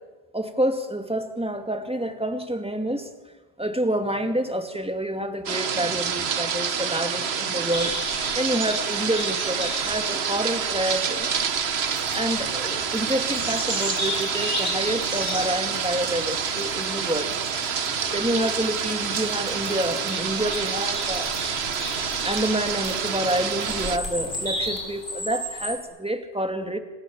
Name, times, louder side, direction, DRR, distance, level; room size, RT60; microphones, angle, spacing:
voice 1, 0.3-3.1 3.6-8.0 8.4-11.3 12.1-17.4 18.1-21.3 22.2-26.8, right 1 dB, 5° right, 6 dB, 2.2 m, -28 dB
sound 1, 5.5-24.0, right 6 dB, 90° right, 1.3 m, -28 dB
sound 2, 7.7-25.8, left 1 dB, 75° left, 6.0 m, -36 dB
sound 3, 11.8-24.8, equal, 70° right, 5.7 m, -45 dB
27.5 x 27.5 x 7.4 m, 1.3 s
omnidirectional pair, 1.1 m